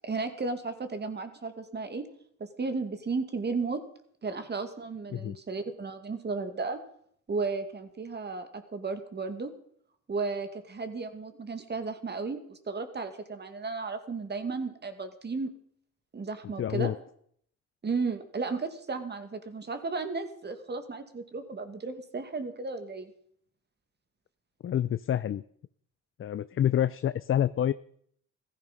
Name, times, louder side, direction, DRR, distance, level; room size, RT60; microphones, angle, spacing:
voice 1, 0.0-2.0 2.4-3.8 4.2-6.8 7.3-9.5 10.1-15.5 16.1-16.9 17.8-23.1, right 4 dB, 35° right, 10 dB, 2.3 m, -34 dB
voice 2, 16.6-17.0 24.6-25.4 26.2-27.7, left 10 dB, 45° left, 15 dB, 0.5 m, -27 dB
15.5 x 14.0 x 5.5 m, 0.64 s
cardioid pair, 90°, 30 cm